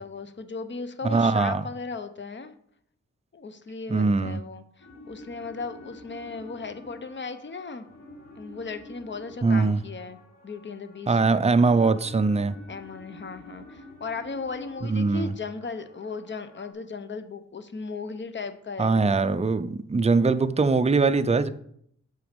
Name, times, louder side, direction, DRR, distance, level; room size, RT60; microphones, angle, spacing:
voice 1, 0.0-2.5 3.3-7.9 8.4-10.2 10.4-11.4 12.7-19.2, left 4 dB, 40° left, 0.8 m, -36 dB
voice 2, 1.0-1.6 3.9-4.4 9.4-9.8 11.1-12.5 14.9-15.3 18.8-21.5, right 4 dB, 20° right, 0.5 m, -22 dB
sound 1, 4.8-16.7, left 1 dB, 90° left, 3.5 m, -48 dB
8.1 x 6.1 x 5.2 m
wide cardioid pair, 120°, 30 cm